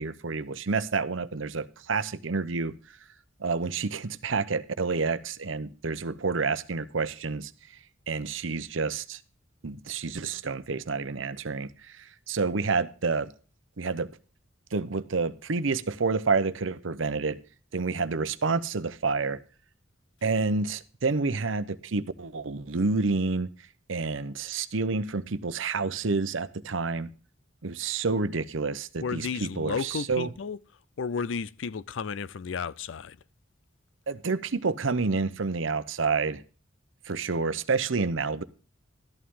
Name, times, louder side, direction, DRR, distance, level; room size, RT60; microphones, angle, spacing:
voice 1, 0.0-2.7 3.4-7.5 8.1-9.2 9.6-13.3 13.8-14.1 14.7-17.4 17.7-19.4 20.2-23.5 23.9-27.1 27.6-30.3 34.1-36.4 37.0-38.4, right 4 dB, 75° right, 0.8 m, -29 dB
voice 2, 29.0-30.6 31.0-33.2, left 5 dB, 70° left, 0.5 m, -33 dB
13.0 x 11.5 x 3.7 m
head